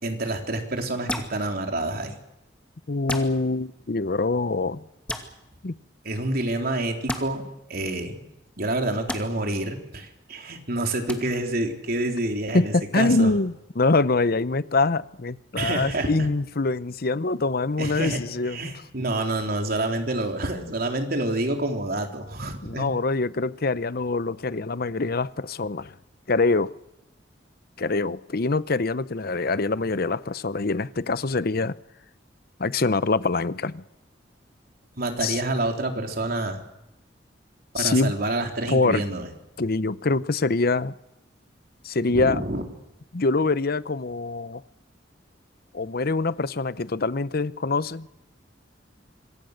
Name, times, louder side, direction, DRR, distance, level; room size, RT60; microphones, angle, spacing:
voice 1, 0.0-2.2 6.0-7.4 7.7-8.2 8.6-13.3 15.6-16.3 17.8-22.9 35.0-36.6 37.7-39.3 42.1-42.6, right 2 dB, 55° right, 3.7 m, -28 dB
sound 1, 1.1-1.3 3.1-3.3 5.1-5.3 7.1-7.2 9.1-9.2 11.1-11.2, left 1 dB, 5° left, 2.4 m, -29 dB
voice 2, 2.9-4.9 5.6-5.7 12.5-18.8 22.6-25.9 26.3-26.7 27.8-31.8 32.6-33.8 35.2-35.4 37.8-38.1 38.7-39.0 39.6-40.9 41.8-42.4 43.1-44.6 45.7-48.1, left 3 dB, 55° left, 0.8 m, -24 dB
26.5 x 24.0 x 6.6 m
head